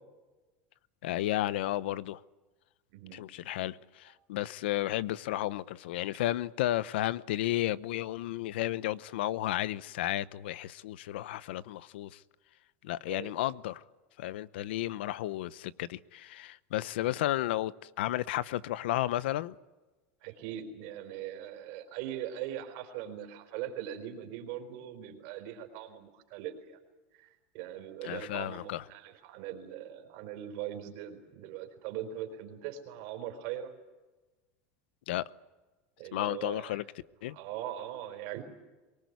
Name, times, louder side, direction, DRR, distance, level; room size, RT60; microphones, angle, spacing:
voice 1, 1.0-2.2 3.1-12.2 12.8-13.8 14.2-19.5 28.0-28.8 35.1-35.2 36.1-36.8 37.2-37.4, left 14 dB, 90° left, 0.8 m, -33 dB
voice 2, 2.9-3.2 13.1-13.3 17.0-17.2 20.2-26.8 27.1-33.7 36.0-36.8 37.3-38.4, right 11 dB, 65° right, 4.3 m, -41 dB
23.5 x 19.5 x 9.5 m
supercardioid pair, 135°, 6 cm